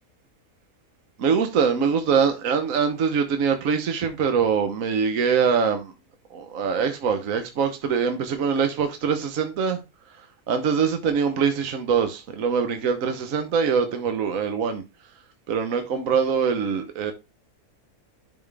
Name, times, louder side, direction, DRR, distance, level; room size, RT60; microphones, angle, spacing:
voice 1, 1.2-5.9 6.3-9.8 10.5-14.8 15.5-17.1, right 6 dB, 65° right, 1.3 m, -23 dB
10.5 x 4.3 x 3.4 m
omnidirectional pair, 1.6 m